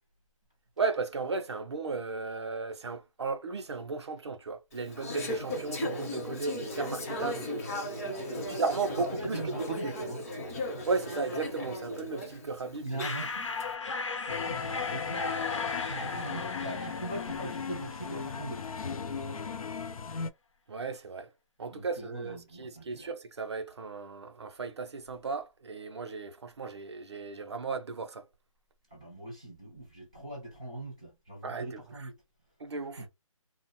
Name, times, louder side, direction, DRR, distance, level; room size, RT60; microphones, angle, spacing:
voice 1, 0.8-7.5 8.5-9.4 9.8-9.9 10.8-12.9 20.7-21.3 21.6-28.3 31.4-31.8 32.6-33.0, right 4 dB, 50° right, 0.5 m, -35 dB
Conversation / Chatter, 4.7-13.6, left 1 dB, 25° left, 0.8 m, -37 dB
voice 2, 8.0-8.5 9.1-10.2 12.8-13.5 14.2-15.3 15.7-18.6 19.1-19.4 21.7-23.1 28.9-32.2 33.0-33.1, right 2 dB, 10° left, 0.4 m, -41 dB
sound 1, 13.0-18.5, left 4 dB, 60° left, 0.8 m, -36 dB
sound 2, 14.3-20.3, left 5 dB, 90° left, 0.5 m, -37 dB
2.8 x 2.0 x 2.8 m
hypercardioid pair, 170°, 18 cm